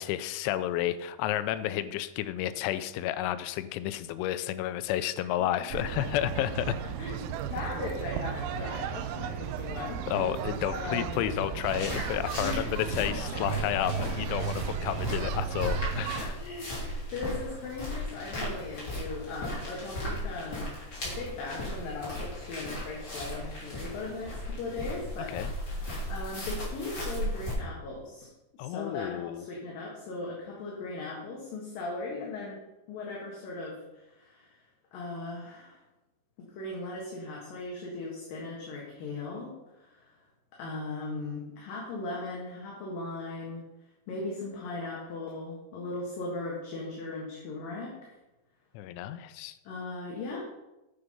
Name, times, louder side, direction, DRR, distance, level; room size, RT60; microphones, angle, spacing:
voice 1, 0.0-6.7 10.1-16.4 25.3-25.5 28.6-29.4 48.7-49.6, left 12 dB, 90° left, 12 dB, 3.0 m, -31 dB
sound 1, 5.7-16.2, right 9 dB, 85° right, 3.0 m, -35 dB
voice 2, 6.8-10.3 10.7-11.2 12.4-12.7 13.1-13.6 13.9-14.1 14.4-14.7 16.3-20.7 21.0-25.6 26.1-32.6 32.9-34.6 34.9-35.8 36.5-40.2 40.5-43.6 44.1-48.0 49.6-50.4, left 3 dB, 60° left, -3 dB, 2.8 m, -38 dB
sound 2, 9.4-15.6, right 2 dB, 30° right, 2.6 m, -47 dB
sound 3, 11.6-27.5, left 1 dB, 25° left, 3.2 m, -36 dB
10.0 x 7.0 x 5.4 m, 0.99 s
omnidirectional pair, 5.3 m